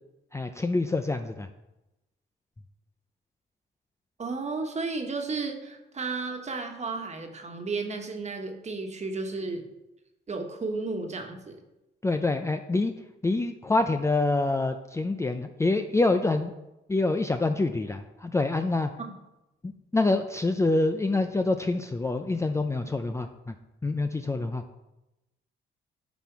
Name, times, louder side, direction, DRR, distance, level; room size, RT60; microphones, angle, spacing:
voice 1, 0.3-1.5 12.0-12.9 13.2-16.5 16.9-18.9 19.6-23.5 23.8-24.6, left 2 dB, 15° left, 7 dB, 0.5 m, -26 dB
voice 2, 4.2-9.6 10.3-11.6, right 3 dB, 35° right, 4 dB, 1.4 m, -33 dB
10.5 x 4.3 x 4.7 m, 0.95 s
cardioid pair, 90°, 20 cm